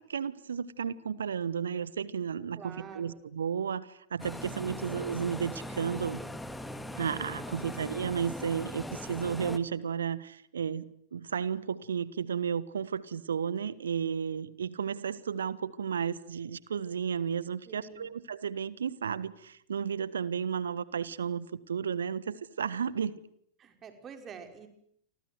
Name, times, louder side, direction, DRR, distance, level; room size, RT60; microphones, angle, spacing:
voice 1, 0.0-6.2 7.0-10.8 11.1-23.2, right 7 dB, 70° right, 19 dB, 1.3 m, -33 dB
voice 2, 2.6-3.2 4.4-4.9 17.7-18.2 23.6-24.7, right 6 dB, 25° right, 6 dB, 5.5 m, -48 dB
sound 1, 4.2-9.6, left 1 dB, 5° left, 2.4 m, -40 dB
29.5 x 25.0 x 8.1 m, 0.69 s
figure-of-eight pair, 90°, 0 cm